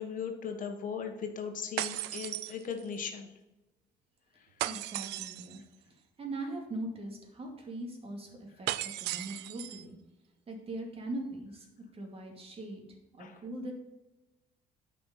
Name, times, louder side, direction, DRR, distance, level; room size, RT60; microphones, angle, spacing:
voice 1, 0.0-3.3 13.2-13.4, left 6 dB, 50° left, 5 dB, 1.3 m, -38 dB
sound 1, 1.8-3.1 4.6-5.6 8.7-9.8, right 15 dB, 85° right, 0.5 m, -36 dB
voice 2, 4.6-5.6 6.2-10.0 10.5-11.7 11.9-12.8 13.2-13.7, right 2 dB, 35° right, 2 dB, 2.5 m, -41 dB
8.7 x 5.4 x 5.5 m, 1.0 s
cardioid pair, 110°, 17 cm